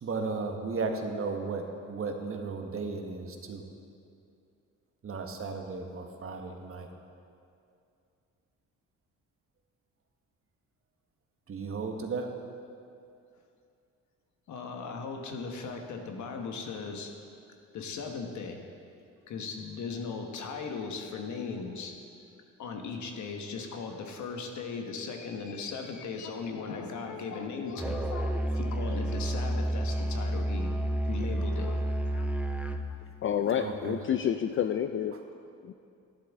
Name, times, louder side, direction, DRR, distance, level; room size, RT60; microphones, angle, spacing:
voice 1, 0.0-3.6 5.0-6.9 11.5-12.3 33.5-34.0, right 4 dB, 45° right, 4 dB, 1.2 m, -35 dB
voice 2, 14.5-17.1 17.7-18.6 19.3-21.9 22.6-30.7 31.0-32.3, left 4 dB, 70° left, 4 dB, 1.3 m, -38 dB
Musical instrument, 27.8-32.9, right 1 dB, 5° right, 0.5 m, -30 dB
voice 3, 33.2-35.1 35.6-35.7, left 9 dB, 45° left, 8 dB, 0.4 m, -29 dB
11.5 x 11.0 x 3.6 m, 2.5 s
cardioid pair, 90°, 30 cm